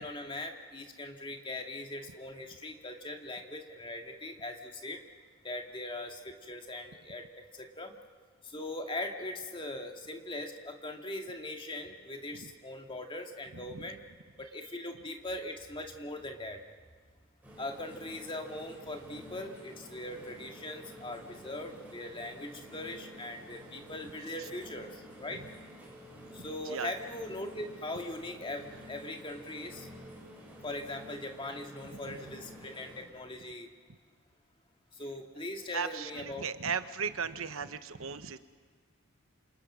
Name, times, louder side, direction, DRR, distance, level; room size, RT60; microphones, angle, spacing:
voice 1, 0.0-5.0 5.4-8.0 8.4-14.0 14.4-16.6 17.6-25.4 26.3-29.9 30.6-33.7 35.0-36.5, left 1 dB, 25° left, 3 dB, 2.0 m, -40 dB
voice 2, 13.5-13.8 24.4-24.5 26.4-26.9 31.9-32.2 35.7-38.4, right 6 dB, 70° right, 10 dB, 1.1 m, -37 dB
sound 1, 17.4-33.0, equal, 10° right, 6.9 m, -50 dB
28.0 x 27.5 x 6.3 m, 1.5 s
head